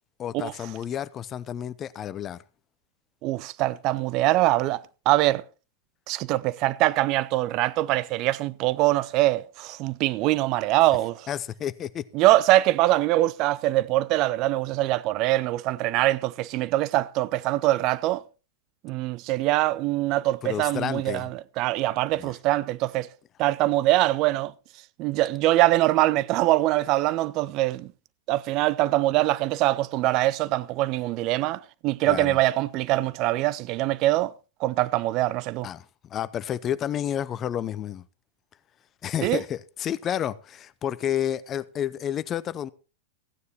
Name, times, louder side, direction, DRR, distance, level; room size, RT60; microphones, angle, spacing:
voice 1, 0.2-2.4 11.3-12.1 20.4-21.3 22.2-22.3 32.1-32.4 35.6-35.8 36.1-38.0 39.0-42.7, left 10 dB, 30° left, 0.7 m, -30 dB
voice 2, 3.2-5.4 6.1-11.3 12.1-18.2 18.8-23.1 23.4-24.5 25.0-27.9 28.3-34.3 34.6-35.7 39.2-39.4, right 17 dB, 45° right, 0.5 m, -23 dB
15.0 x 9.5 x 4.3 m
figure-of-eight pair, 95°, 0 cm